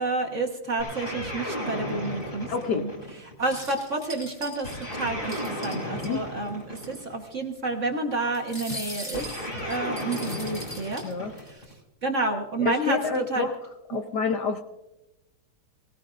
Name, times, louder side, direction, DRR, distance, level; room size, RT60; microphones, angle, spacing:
voice 1, 0.0-2.9 3.4-9.3 9.6-11.0 11.5-11.6 12.0-13.5, right 2 dB, 40° right, 3 dB, 1.4 m, -30 dB
sound 1, 0.8-3.4 4.6-7.2 9.1-11.7, equal, 35° left, 5.5 m, -34 dB
voice 2, 2.5-2.9 5.9-6.2 11.0-11.3 12.6-13.5 13.9-14.6, left 5 dB, 60° left, 6 dB, 1.2 m, -28 dB
sound 2, 3.4-6.1 6.5-6.6 6.7-6.9 8.3-11.5, equal, 15° left, 3.2 m, -40 dB
24.5 x 17.0 x 2.5 m, 0.98 s
omnidirectional pair, 2.3 m